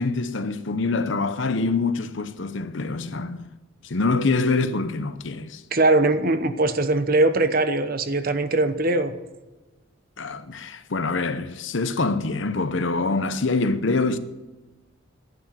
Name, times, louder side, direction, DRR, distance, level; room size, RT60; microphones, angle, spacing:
voice 1, 0.0-3.5 3.8-5.6 10.2-14.2, left 3 dB, 60° left, 0.8 m, -25 dB
voice 2, 5.7-9.1, right 2 dB, 45° right, 0.9 m, -21 dB
11.5 x 11.0 x 7.5 m
head